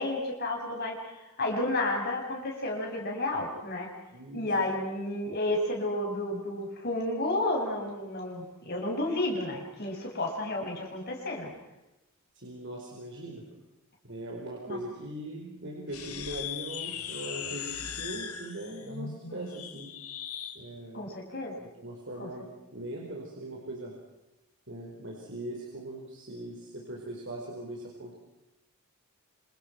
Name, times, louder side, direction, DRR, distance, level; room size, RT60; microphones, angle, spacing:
voice 1, 0.0-3.9 4.3-11.5 14.7-14.8 20.9-21.5 22.2-22.3, left 2 dB, 45° left, 0 dB, 7.5 m, -31 dB
voice 2, 4.1-4.5 12.3-13.4 14.0-19.9 20.5-21.0 21.6-23.9 24.7-28.1, right 1 dB, 55° right, -1 dB, 4.9 m, -40 dB
sound 1, 15.9-20.6, left 8 dB, 90° left, 3.0 m, -39 dB
28.0 x 27.0 x 6.1 m, 0.97 s
head